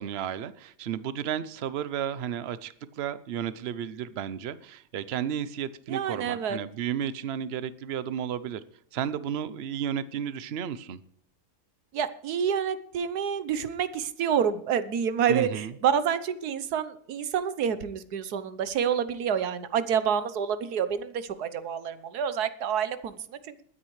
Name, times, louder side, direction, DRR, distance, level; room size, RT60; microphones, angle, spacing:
voice 1, 0.0-8.6 8.9-11.0 15.3-15.7, right 9 dB, 55° right, 15 dB, 0.7 m, -33 dB
voice 2, 5.9-6.6 11.9-23.5, right 8 dB, 70° right, 13 dB, 1.5 m, -28 dB
21.5 x 9.8 x 3.2 m, 0.65 s
omnidirectional pair, 1.7 m